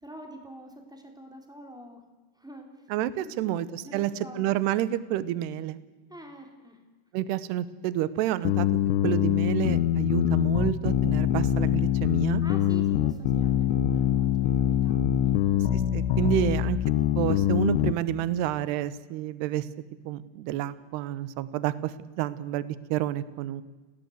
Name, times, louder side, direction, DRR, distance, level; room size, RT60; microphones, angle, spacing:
voice 1, 0.0-2.0 2.4-2.7 3.2-3.6 3.8-4.6 6.1-6.8 12.4-15.6, equal, ahead, 3 dB, 2.8 m, -46 dB
voice 2, 2.9-5.8 7.1-8.7 9.0-12.4 15.7-16.8 17.2-19.7 20.1-23.6, right 13 dB, 75° right, 16 dB, 2.8 m, -29 dB
sound 1, 8.5-17.9, left 11 dB, 80° left, 3.1 m, -24 dB
29.0 x 18.5 x 8.0 m, 1.3 s
omnidirectional pair, 5.3 m